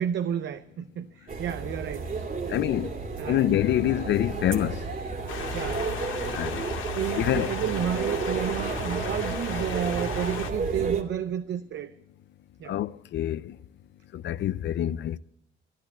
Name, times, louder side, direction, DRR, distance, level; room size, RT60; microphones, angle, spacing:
voice 1, 0.0-2.1 2.5-2.6 3.2-3.5 3.7-3.9 5.5-5.9 6.9-11.9 12.6-12.8, right 9 dB, 65° right, 0.7 m, -31 dB
sound 1, 1.3-11.0, right 3 dB, 45° right, 2.4 m, -32 dB
voice 2, 2.5-3.0 3.3-4.9 6.3-6.7 7.2-7.5 12.7-13.6 14.1-15.2, left 12 dB, 65° left, 0.5 m, -26 dB
sound 2, 5.3-10.5, left 6 dB, 85° left, 1.8 m, -36 dB
13.5 x 10.5 x 8.3 m
cardioid pair, 90°, 20 cm